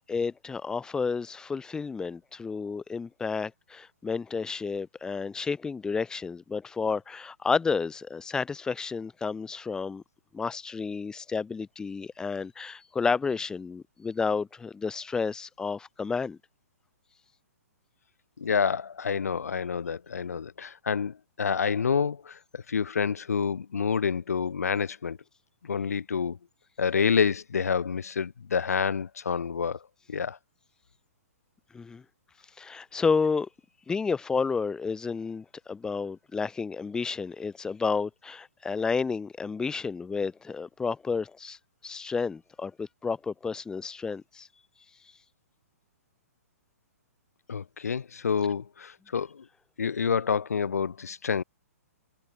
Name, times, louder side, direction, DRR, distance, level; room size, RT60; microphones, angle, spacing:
voice 1, 0.1-10.0 10.3-16.4 31.7-32.0 32.6-33.5 33.9-41.6 41.8-44.5, left 5 dB, 10° left, 0.5 m, -31 dB
voice 2, 18.4-25.2 25.7-26.4 26.8-29.8 30.1-30.4 47.5-49.4 49.8-51.4, left 6 dB, 75° left, 0.6 m, -28 dB
figure-of-eight pair, 120°, 8 cm